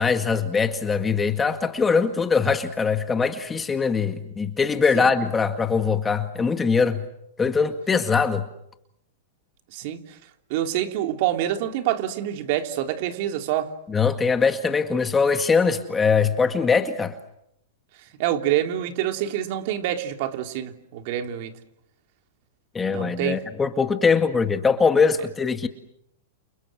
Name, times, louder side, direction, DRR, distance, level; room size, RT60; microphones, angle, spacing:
voice 1, 0.0-7.0 7.4-8.4 13.9-17.1 22.7-25.7, left 5 dB, 15° left, 1.9 m, -22 dB
voice 2, 9.7-10.2 10.5-13.7 18.2-21.5 22.9-23.4, right 12 dB, 50° right, 3.1 m, -26 dB
29.5 x 29.5 x 6.3 m
hypercardioid pair, 140°, 0 cm